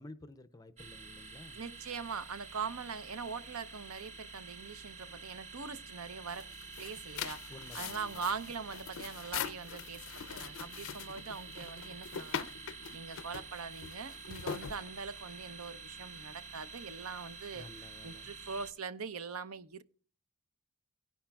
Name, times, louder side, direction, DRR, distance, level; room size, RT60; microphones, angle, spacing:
voice 1, 0.0-1.6 7.5-8.3 17.5-18.3, left 2 dB, 15° left, 0.5 m, -52 dB
sound 1, 0.8-18.7, right 4 dB, 30° right, 1.1 m, -49 dB
voice 2, 1.5-6.5 6.7-19.8, right 5 dB, 75° right, 0.8 m, -42 dB
sound 2, 6.3-15.4, left 8 dB, 65° left, 0.5 m, -43 dB
18.0 x 10.0 x 2.3 m
head